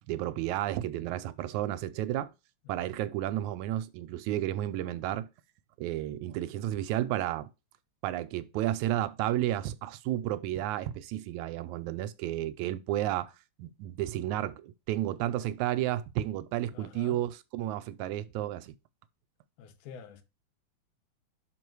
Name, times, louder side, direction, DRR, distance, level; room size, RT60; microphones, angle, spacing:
voice 1, 0.1-2.3 2.7-5.3 5.8-7.5 8.0-13.3 13.6-18.8, right 13 dB, 80° right, 1.9 m, -32 dB
voice 2, 16.7-17.2 19.6-20.2, left 6 dB, 85° left, 2.4 m, -47 dB
6.0 x 5.0 x 4.6 m
omnidirectional pair, 3.4 m